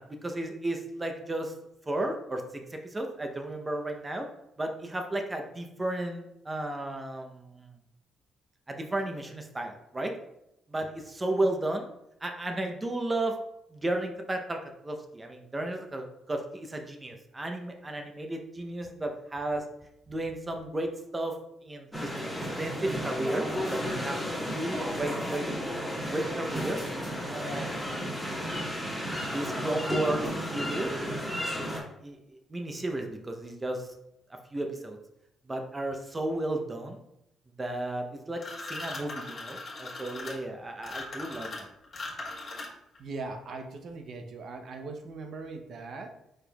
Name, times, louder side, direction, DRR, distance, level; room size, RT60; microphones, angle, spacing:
voice 1, 0.0-1.5 1.9-4.3 4.6-7.7 8.7-10.1 10.7-11.9 12.2-13.4 13.7-19.6 20.1-21.3 21.6-22.3 22.6-25.5 26.1-26.8 27.3-28.0 29.3-30.9 32.0-33.9 34.5-35.0 35.5-37.0 37.6-41.7, right 1 dB, 20° right, 4 dB, 0.7 m, -33 dB
sound 1, 21.9-31.8, equal, ahead, 1.6 m, -33 dB
sound 2, 38.4-43.0, left 2 dB, 45° left, 1.2 m, -39 dB
voice 2, 43.0-46.2, right 3 dB, 60° right, 5 dB, 0.7 m, -40 dB
5.1 x 4.4 x 2.3 m, 0.83 s
cardioid pair, 90°, 0 cm